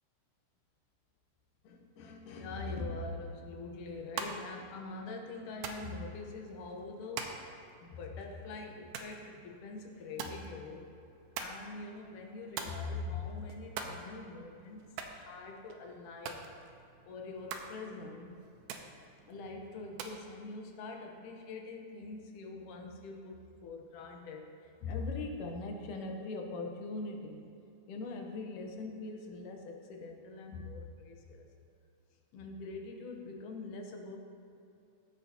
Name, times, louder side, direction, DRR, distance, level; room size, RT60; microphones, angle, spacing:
voice 1, 1.6-7.4 7.8-10.9 11.4-14.8 15.1-16.5 17.1-18.4 19.2-27.4 27.9-31.5 32.3-34.2, left 3 dB, 85° left, 2 dB, 2.5 m, -43 dB
sound 1, 3.9-20.2, right 5 dB, 90° right, 2.2 m, -46 dB
14.0 x 7.6 x 2.8 m, 2.7 s
omnidirectional pair, 3.6 m